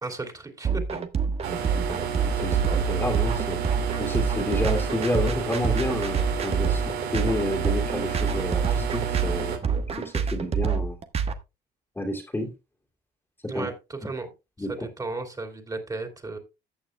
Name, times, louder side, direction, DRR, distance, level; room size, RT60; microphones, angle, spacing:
voice 1, 0.0-0.7 1.5-1.7 13.5-14.3 15.0-16.4, right 3 dB, 20° right, 2.9 m, -34 dB
sound 1, 0.6-11.3, right 6 dB, 35° right, 1.2 m, -26 dB
sound 2, 1.4-9.6, right 7 dB, 90° right, 2.1 m, -30 dB
voice 2, 1.9-3.6 4.0-9.6 10.0-11.0 12.0-12.5 13.4-13.7 14.6-14.9, left 1 dB, 10° left, 2.3 m, -30 dB
14.5 x 8.7 x 2.2 m
cardioid pair, 110°, 17 cm